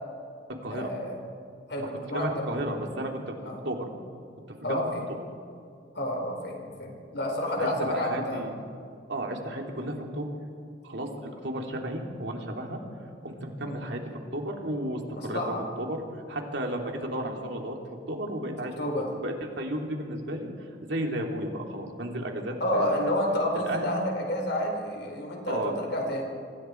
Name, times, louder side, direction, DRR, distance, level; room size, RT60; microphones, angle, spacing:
voice 1, 0.7-1.2 1.7-2.4 3.4-3.6 4.6-5.0 5.9-8.5 13.6-13.9 15.1-15.6 18.8-19.1 22.6-26.2, left 1 dB, 65° left, 2 dB, 4.8 m, -30 dB
voice 2, 2.1-3.3 3.6-3.9 4.7-4.9 7.6-8.5 9.1-10.3 10.8-12.8 13.2-14.0 14.3-15.4 15.8-16.0 16.3-18.7 19.2-20.5 20.9-23.1 23.5-23.9 25.4-25.8, right 1 dB, 65° right, 2 dB, 3.2 m, -33 dB
27.5 x 25.5 x 4.7 m, 2.4 s
head